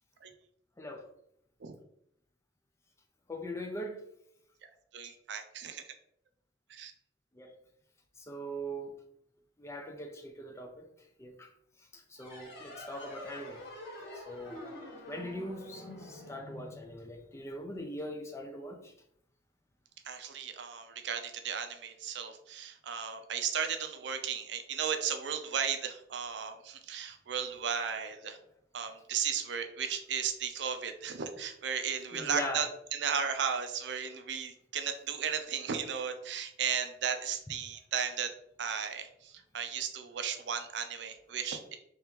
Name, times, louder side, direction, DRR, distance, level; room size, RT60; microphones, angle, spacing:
voice 1, 0.8-1.1 3.3-4.0 7.3-7.6 8.2-9.0 9.6-10.9 11.2-11.5 11.9-13.6 14.1-14.6 15.1-18.9 32.1-32.7, equal, 15° left, 0.4 m, -41 dB
voice 2, 4.9-5.8 6.7-6.9 20.0-28.4 28.7-32.7 32.9-38.3 38.6-41.8, right 7 dB, 60° right, 0.5 m, -35 dB
sound 1, 12.2-17.4, left 1 dB, 60° left, 1.3 m, -47 dB
3.4 x 2.9 x 3.5 m
head